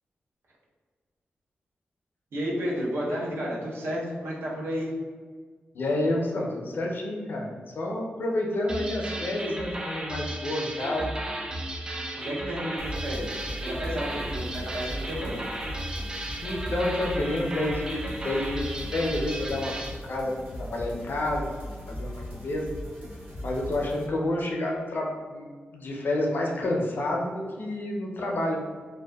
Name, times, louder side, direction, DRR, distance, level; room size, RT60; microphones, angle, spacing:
voice 1, 2.3-4.9 12.1-15.5, equal, 80° right, -4 dB, 0.6 m, -32 dB
voice 2, 5.7-7.5 7.7-11.1 16.4-19.8 20.0-21.6 21.9-22.7 23.4-28.6, left 1 dB, 60° left, -1 dB, 0.4 m, -29 dB
sound 1, 8.7-20.0, right 1 dB, 20° right, 0.3 m, -34 dB
sound 2, 12.8-24.1, equal, 50° right, 0.9 m, -38 dB
2.6 x 2.1 x 2.2 m, 1.5 s
wide cardioid pair, 90°, 4 cm